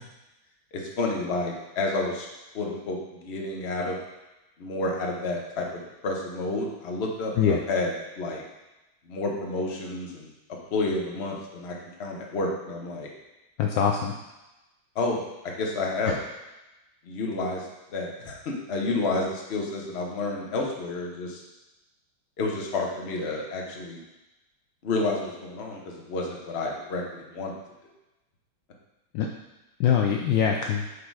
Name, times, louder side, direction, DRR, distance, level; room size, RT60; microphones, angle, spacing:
voice 1, 0.7-2.3 2.5-4.0 4.6-8.4 9.0-10.3 10.7-13.1 14.9-16.1 17.0-21.4 22.4-24.0 24.8-27.5, left 2 dB, 40° left, -1 dB, 1.1 m, -30 dB
voice 2, 13.6-14.1 16.1-16.2 29.1-29.3 29.8-30.9, left 7 dB, 75° left, 2 dB, 1.2 m, -23 dB
8.3 x 4.0 x 4.7 m, 1.0 s
omnidirectional pair, 2.3 m